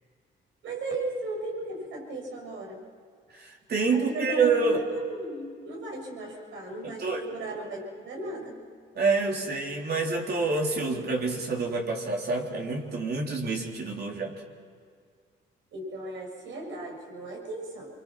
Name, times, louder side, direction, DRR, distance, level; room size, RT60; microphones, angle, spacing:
voice 1, 0.6-2.8 3.9-8.6 15.7-17.9, right 2 dB, 75° right, 1 dB, 6.9 m, -36 dB
voice 2, 3.4-4.8 7.0-7.2 9.0-14.3, right 4 dB, 55° right, 0 dB, 3.7 m, -27 dB
26.0 x 24.5 x 6.0 m, 2.1 s
cardioid pair, 90°, 20 cm